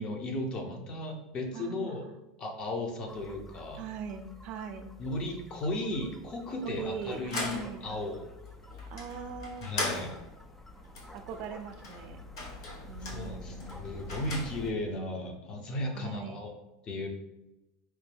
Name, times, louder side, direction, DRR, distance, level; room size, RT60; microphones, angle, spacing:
voice 1, 0.0-2.0 2.4-3.8 5.0-8.3 9.6-10.1 13.0-16.5 16.8-17.1, left 1 dB, 35° left, 3 dB, 0.8 m, -35 dB
voice 2, 1.5-2.1 3.8-4.9 6.6-7.9 8.9-9.7 11.1-12.2 12.8-13.8 15.9-16.4, right 6 dB, 55° right, 7 dB, 0.5 m, -41 dB
sound 1, 3.1-14.7, equal, 10° left, 0.3 m, -49 dB
sound 2, 6.9-14.9, left 2 dB, 85° left, 0.9 m, -40 dB
4.6 x 2.2 x 3.4 m, 0.95 s
supercardioid pair, 105°, 2 cm